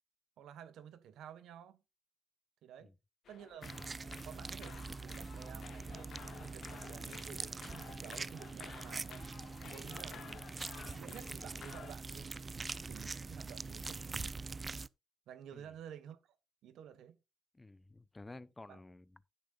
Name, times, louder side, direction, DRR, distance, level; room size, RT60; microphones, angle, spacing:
voice 1, 0.4-1.8 2.6-2.9 3.3-3.8 4.2-9.2 9.6-10.4 10.9-14.3 15.3-16.4 16.6-17.2 18.7-18.8, right 9 dB, 85° right, 1.3 m, -52 dB
sound 1, 3.2-11.9, left 8 dB, 70° left, 1.1 m, -53 dB
sound 2, 3.6-14.9, right 4 dB, 30° right, 0.5 m, -44 dB
voice 2, 17.5-19.3, left 2 dB, 20° left, 0.8 m, -53 dB
11.5 x 10.5 x 2.5 m
cardioid pair, 90°, 0 cm